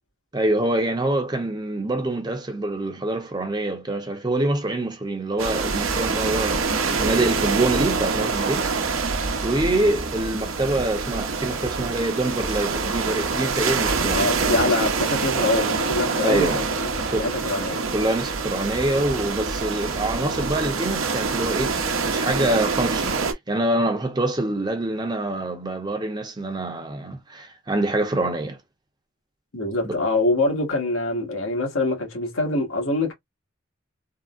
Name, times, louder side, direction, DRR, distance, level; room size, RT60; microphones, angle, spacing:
voice 1, 0.3-8.9 9.4-14.3 16.2-16.6 17.1-17.3 17.9-28.6 29.8-30.0, right 1 dB, 20° right, 0.7 m, -25 dB
sound 1, 5.4-23.3, right 4 dB, 85° right, 0.8 m, -25 dB
voice 2, 14.1-17.8 29.5-33.1, left 2 dB, 85° left, 1.5 m, -24 dB
3.7 x 2.1 x 2.4 m
head